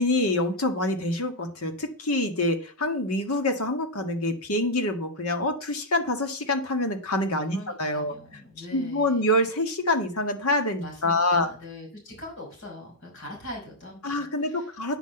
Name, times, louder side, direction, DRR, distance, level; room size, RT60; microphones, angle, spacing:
voice 1, 0.0-8.1 8.7-11.5 14.0-15.0, left 1 dB, 90° left, 6 dB, 1.9 m, -26 dB
voice 2, 7.3-9.3 10.8-14.7, left 1 dB, 60° left, 0 dB, 5.7 m, -42 dB
9.7 x 6.0 x 8.0 m, 0.40 s
head